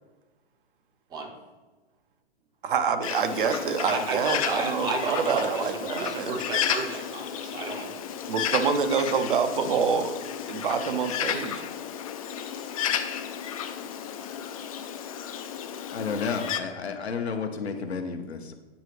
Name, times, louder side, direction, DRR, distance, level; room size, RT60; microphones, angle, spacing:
voice 1, 2.6-6.4 8.3-10.1 10.5-11.6, right 6 dB, 50° right, 8 dB, 0.6 m, -26 dB
Bird, 3.0-16.6, left 9 dB, 35° left, 0.4 m, -33 dB
voice 2, 3.9-8.0, right 3 dB, 10° right, 3 dB, 0.6 m, -33 dB
voice 3, 15.9-18.5, left 5 dB, 75° left, 6 dB, 0.9 m, -31 dB
8.2 x 4.0 x 3.2 m, 1.2 s
figure-of-eight pair, 115°, 32 cm